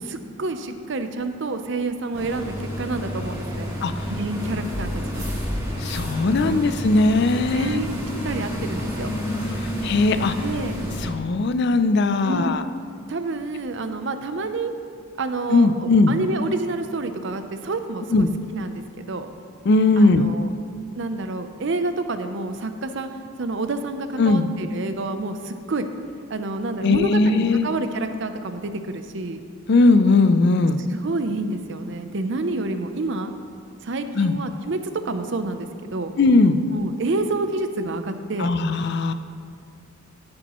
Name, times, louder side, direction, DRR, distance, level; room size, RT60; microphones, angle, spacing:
voice 1, 0.0-3.7 4.1-5.2 6.4-6.6 7.5-8.0 8.2-9.1 10.4-10.8 12.2-12.5 13.1-14.7 15.2-19.3 20.0-20.5 21.0-23.1 23.4-25.9 26.3-29.4 30.9-33.3 33.8-36.1 36.7-38.5, right 2 dB, 60° right, 8 dB, 0.6 m, -28 dB
sound 1, 2.1-11.1, equal, 15° right, 2.5 m, -29 dB
voice 2, 5.8-7.8 9.8-10.3 11.0-12.6 15.5-16.1 18.1-18.3 19.7-20.3 24.2-24.5 26.8-27.7 29.7-30.8 34.2-34.4 36.2-36.6 38.4-39.1, left 3 dB, 50° left, 10 dB, 0.4 m, -18 dB
14.0 x 8.7 x 3.0 m, 2.2 s
head